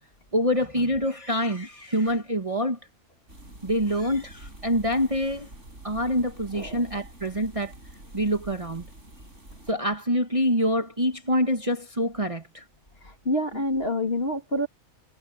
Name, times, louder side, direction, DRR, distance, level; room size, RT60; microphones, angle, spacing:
voice 1, 0.3-2.8 3.6-5.5 5.8-7.7 8.1-8.8 9.7-12.6, equal, 25° right, 1.7 m, -26 dB
sound 1, 3.3-9.7, right 1 dB, 55° right, 8.0 m, -46 dB
voice 2, 13.0-14.7, left 1 dB, 45° left, 3.4 m, -27 dB
omnidirectional pair, 1.5 m